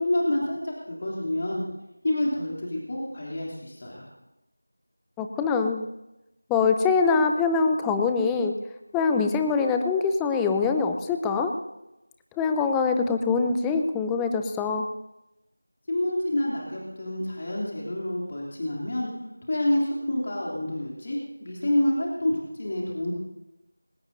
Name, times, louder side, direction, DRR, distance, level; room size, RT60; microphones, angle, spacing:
voice 1, 0.0-1.6 2.0-4.1 15.9-19.1 19.5-23.1, left 1 dB, 35° left, -4 dB, 3.0 m, -28 dB
voice 2, 5.2-5.9 6.5-8.6 8.9-11.5 12.4-14.9, left 4 dB, 5° left, 5 dB, 0.4 m, -24 dB
22.0 x 19.5 x 2.7 m, 0.94 s
figure-of-eight pair, 175°, 0 cm